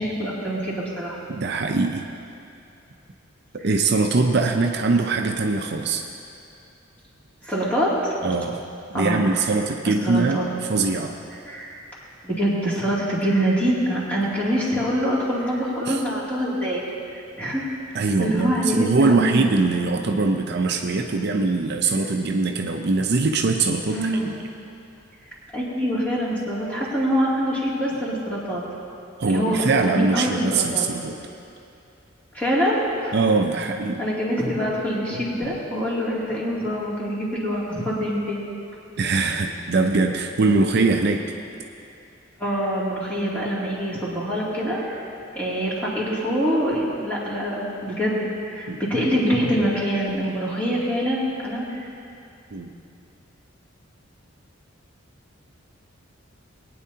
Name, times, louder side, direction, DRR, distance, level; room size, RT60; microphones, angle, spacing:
voice 1, 0.0-1.2 3.6-3.7 7.4-8.1 8.9-9.4 9.8-10.5 11.5-11.7 12.2-16.8 17.4-19.4 23.9-24.3 25.5-28.6 29.2-30.9 32.3-33.1 34.0-38.4 42.4-45.0 45.3-51.9, equal, 10° left, -8 dB, 2.6 m, -25 dB
voice 2, 1.3-2.1 3.6-6.0 8.2-8.6 8.9-10.4 10.7-11.2 15.9-16.0 17.9-24.3 29.2-31.2 33.1-34.0 39.0-41.2 48.7-48.8 52.5-52.7, right 3 dB, 55° right, 3 dB, 0.5 m, -22 dB
21.0 x 9.4 x 2.8 m, 2.6 s
head